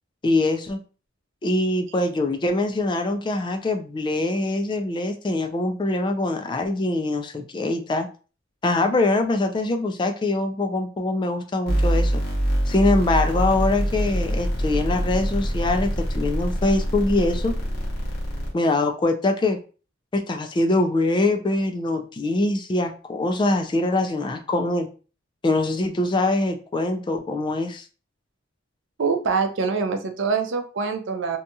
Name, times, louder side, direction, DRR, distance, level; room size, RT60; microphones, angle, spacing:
voice 1, 0.2-0.8 1.4-8.1 8.6-12.2 12.7-17.6 18.5-19.6 20.1-24.9 25.4-27.9, left 2 dB, 25° left, 6 dB, 0.3 m, -23 dB
sound 1, 11.7-18.5, equal, 55° left, 0.9 m, -24 dB
voice 2, 29.0-31.4, right 5 dB, 70° right, 6 dB, 0.5 m, -24 dB
2.7 x 2.3 x 2.6 m, 0.36 s
head